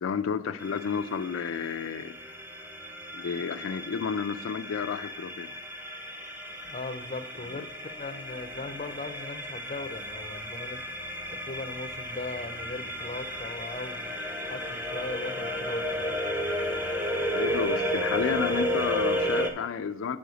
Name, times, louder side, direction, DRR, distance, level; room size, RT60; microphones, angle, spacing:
voice 1, 0.0-2.2 3.1-5.5 7.5-7.6 17.3-20.2, left 6 dB, 85° left, 9 dB, 0.4 m, -31 dB
sound 1, 0.6-19.5, equal, 10° right, 0.6 m, -33 dB
voice 2, 6.6-10.8 11.3-14.1 14.4-16.1, left 2 dB, 35° left, 7 dB, 0.5 m, -39 dB
6.3 x 4.8 x 6.8 m, 0.96 s
head